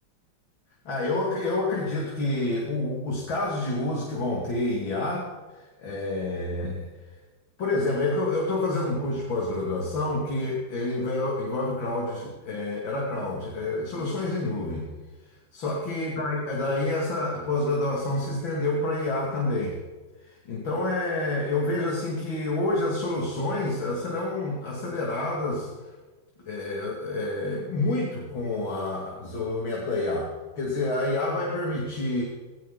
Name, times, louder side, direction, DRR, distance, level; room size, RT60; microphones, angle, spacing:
voice 1, 0.9-5.3 5.6-6.9 7.6-14.9 15.5-19.8 20.3-25.7 26.5-30.3 30.6-32.2, left 2 dB, 80° left, -3 dB, 3.6 m, -28 dB
19.0 x 18.0 x 4.2 m, 1.2 s
omnidirectional pair, 2.1 m